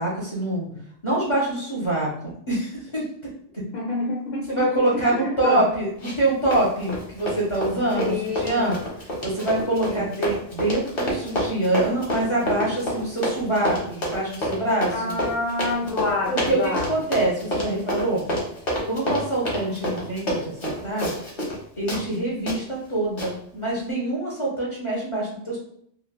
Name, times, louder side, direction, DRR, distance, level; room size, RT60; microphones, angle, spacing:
voice 1, 0.0-0.6 1.0-3.1 4.5-8.1 8.4-8.8 9.2-15.2 16.3-16.6 16.9-18.2 18.8-21.1 21.8-25.6, right 1 dB, 30° left, -6 dB, 0.7 m, -25 dB
voice 2, 3.7-5.6 7.9-8.8 9.9-10.1 14.9-16.9 19.6-19.8, left 2 dB, 85° left, -2 dB, 0.9 m, -28 dB
Run, 6.0-6.3 6.5-21.6 21.9-22.0 22.5-22.6 23.2-23.3, equal, 50° left, 1.0 m, -28 dB
3.1 x 2.2 x 2.2 m, 0.66 s
omnidirectional pair, 1.2 m